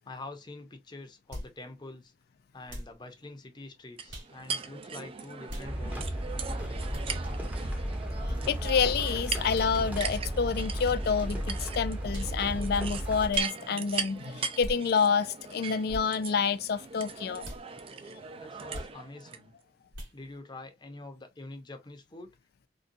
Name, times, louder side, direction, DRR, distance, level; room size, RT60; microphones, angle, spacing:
voice 1, 0.1-2.1 2.5-6.2 18.4-19.5 20.1-22.3, left 2 dB, 25° left, 0.7 m, -46 dB
sound 1, 1.3-1.5 2.7-3.0 4.1-4.3 5.5-5.7 6.9-7.1 8.3-8.4 9.5-9.7 10.8-11.0 12.1-12.4 13.3-13.5 14.6-14.8 15.9-16.1 17.4-17.6 18.7-18.9 19.9-20.2, equal, 80° right, 2.1 m, -39 dB
sound 2, 4.0-19.4, right 5 dB, 30° right, 0.4 m, -39 dB
sound 3, 5.6-13.3, equal, 10° right, 0.7 m, -34 dB
voice 2, 8.5-17.5, left 6 dB, 55° left, 0.3 m, -28 dB
3.8 x 2.2 x 2.6 m
head